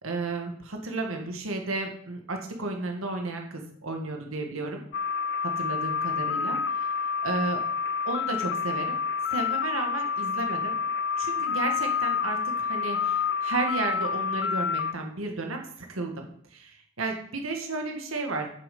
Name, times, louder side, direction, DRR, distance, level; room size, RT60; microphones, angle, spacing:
voice 1, 0.0-4.8 5.4-7.6 8.0-9.0 9.3-10.8 11.2-18.5, right 3 dB, 85° right, 3 dB, 1.7 m, -33 dB
sound 1, 4.9-14.9, left 6 dB, 55° left, 0.4 m, -28 dB
9.0 x 7.5 x 5.3 m, 0.63 s
head